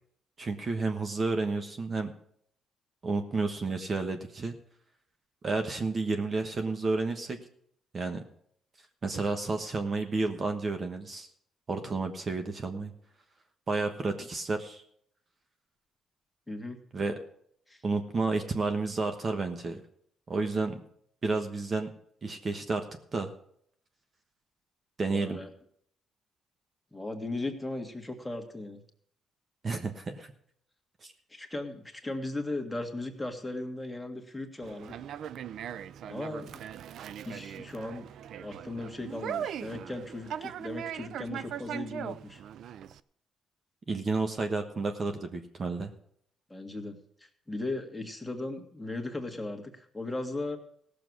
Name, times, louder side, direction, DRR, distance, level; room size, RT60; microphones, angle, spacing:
voice 1, 0.4-2.1 3.0-4.5 5.4-7.4 7.9-8.2 9.0-11.3 11.7-12.9 13.7-14.8 16.9-17.1 17.8-19.8 20.3-20.8 21.2-21.9 22.2-22.8 23.1-23.3 25.0-25.4 29.6-30.3 31.0-31.1 43.9-45.9, right 3 dB, 40° right, 6 dB, 1.2 m, -31 dB
voice 2, 16.5-16.8 17.7-17.8 25.1-25.5 26.9-28.8 31.3-34.9 36.0-36.6 37.2-38.0 38.4-42.4 46.5-50.6, left 2 dB, 10° left, 3 dB, 1.9 m, -37 dB
Conversation, 34.6-43.0, right 9 dB, 70° right, 0.4 m, -40 dB
16.5 x 7.0 x 6.3 m, 0.68 s
cardioid pair, 90°, 0 cm